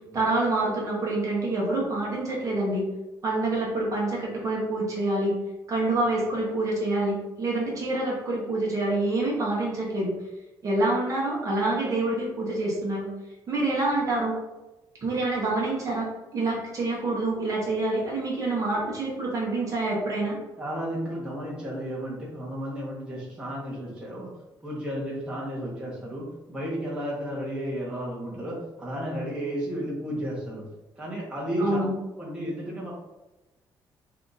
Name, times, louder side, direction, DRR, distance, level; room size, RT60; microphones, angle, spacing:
voice 1, 0.1-2.9 3.2-5.4 5.7-10.1 10.6-13.1 13.5-14.4 15.0-20.4 31.6-31.9, right 2 dB, 40° right, -4 dB, 0.9 m, -27 dB
voice 2, 20.6-24.3 24.6-30.6 31.0-31.8 32.2-32.9, equal, 10° right, -5 dB, 0.9 m, -33 dB
2.8 x 2.4 x 3.8 m, 1.0 s
cardioid pair, 135°, 9 cm